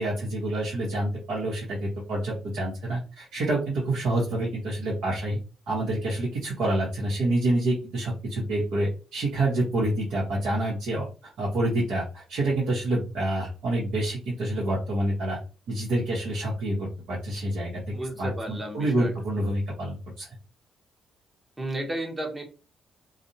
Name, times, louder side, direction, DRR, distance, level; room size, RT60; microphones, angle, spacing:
voice 1, 0.0-5.4 5.7-15.4 15.7-17.7 18.2-20.3, right 1 dB, 80° right, -5 dB, 0.9 m, -27 dB
voice 2, 17.9-19.1 21.6-22.4, right 1 dB, 20° right, 2 dB, 0.7 m, -33 dB
2.4 x 2.0 x 2.7 m, 0.33 s
cardioid pair, 90°, 0 cm